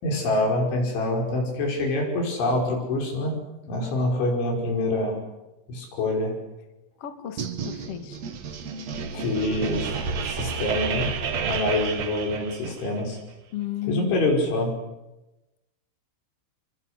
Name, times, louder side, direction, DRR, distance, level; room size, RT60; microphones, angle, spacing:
voice 1, 0.0-3.3 3.7-5.2 5.7-6.4 9.1-9.9 10.3-11.1 11.5-13.2 13.9-14.7, left 2 dB, 75° left, 1 dB, 8.0 m, -25 dB
voice 2, 7.0-8.2 13.5-14.2, left 12 dB, 50° left, 8 dB, 1.9 m, -34 dB
sound 1, 7.4-13.0, right 5 dB, 55° right, 2.0 m, -31 dB
28.0 x 23.5 x 8.2 m, 1.0 s
omnidirectional pair, 5.5 m